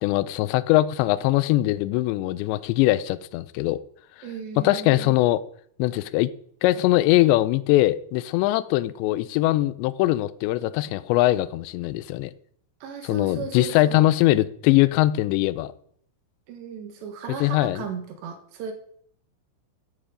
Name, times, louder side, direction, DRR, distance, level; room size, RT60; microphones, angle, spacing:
voice 1, 0.0-3.8 4.6-5.4 5.8-6.3 6.6-12.3 13.0-15.7 17.4-17.8, left 16 dB, 85° left, 15 dB, 2.6 m, -21 dB
voice 2, 4.2-5.1 12.8-14.1 16.5-18.7, right 6 dB, 70° right, 6 dB, 3.4 m, -36 dB
15.0 x 9.6 x 5.1 m, 0.62 s
omnidirectional pair, 5.8 m